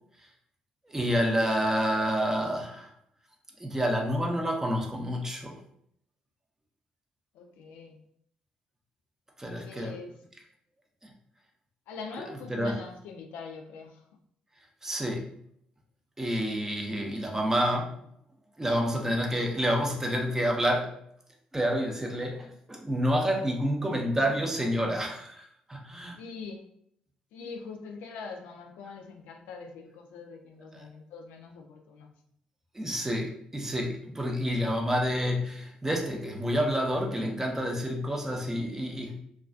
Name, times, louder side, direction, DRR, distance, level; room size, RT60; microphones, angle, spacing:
voice 1, 0.9-2.9 3.6-5.6 9.4-9.9 12.5-12.8 14.8-15.3 16.2-18.0 18.6-20.9 21.5-26.2 30.7-30.8 32.7-39.2, equal, 15° right, 1 dB, 0.6 m, -28 dB
voice 2, 7.3-8.0 9.6-10.2 11.9-14.0 26.2-26.6 27.3-32.1, left 4 dB, 80° left, 3 dB, 0.3 m, -43 dB
2.4 x 2.3 x 2.3 m, 0.71 s
hypercardioid pair, 55°, 3 cm